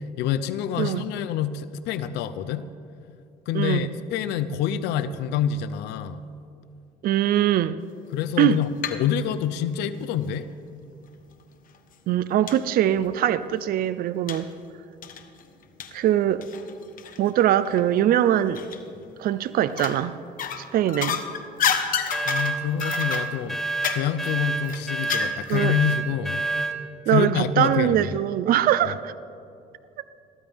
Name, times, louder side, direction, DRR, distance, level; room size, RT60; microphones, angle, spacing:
voice 1, 0.2-2.7 3.5-6.2 8.1-10.5 22.2-23.6 23.9-26.4 27.1-28.1, left 9 dB, 90° left, 13 dB, 0.6 m, -26 dB
voice 2, 3.5-3.9 7.0-7.8 8.4-8.6 12.1-14.5 15.9-16.5 17.2-18.7 19.2-20.1 20.6-21.2 25.5-25.7 27.1-29.1, right 11 dB, 60° right, 14 dB, 0.5 m, -22 dB
sound 1, 8.3-9.1 9.4-10.4 11.2-11.3 11.7-11.8 12.5-12.6 13.0-13.1 14.3-14.5 15.0-17.3 17.6-17.8 18.5-19.1 19.6-20.0 20.4-25.6 25.9-26.0, left 8 dB, 55° left, 1.3 m, -30 dB
sound 2, 22.1-26.8, right 3 dB, ahead, 1.6 m, -28 dB
22.0 x 15.5 x 3.5 m, 2.5 s
cardioid pair, 110°, 17 cm